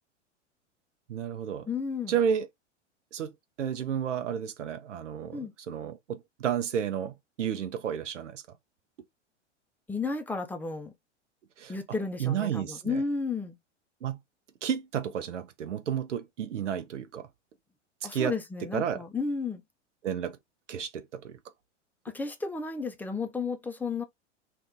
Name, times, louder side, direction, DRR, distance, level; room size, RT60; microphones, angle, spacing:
voice 1, 1.1-1.7 2.1-2.5 3.1-3.3 3.6-8.4 11.6-11.7 12.2-13.0 14.0-14.2 14.6-17.3 18.1-18.3 18.7-19.0 20.0-20.4 20.7-21.4, right 8 dB, 80° right, 0.6 m, -31 dB
voice 2, 1.7-2.1 5.3-5.5 9.9-10.9 11.7-13.6 18.0-19.6 22.0-24.0, left 4 dB, 5° left, 0.4 m, -33 dB
2.5 x 2.5 x 3.5 m
figure-of-eight pair, 95°, 36 cm